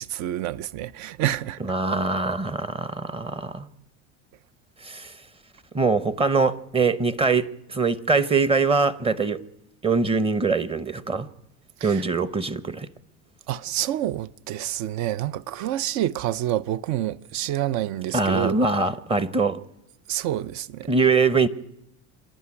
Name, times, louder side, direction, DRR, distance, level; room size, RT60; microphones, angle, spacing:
voice 1, 0.0-1.6 11.8-12.0 13.5-18.6 20.1-20.9, right 13 dB, 60° right, 0.7 m, -28 dB
voice 2, 1.6-3.7 4.8-5.2 5.7-9.4 9.8-11.3 11.8-12.9 18.1-19.6 20.9-21.5, right 4 dB, 15° right, 0.9 m, -23 dB
26.0 x 11.5 x 9.8 m
supercardioid pair, 120°, 33 cm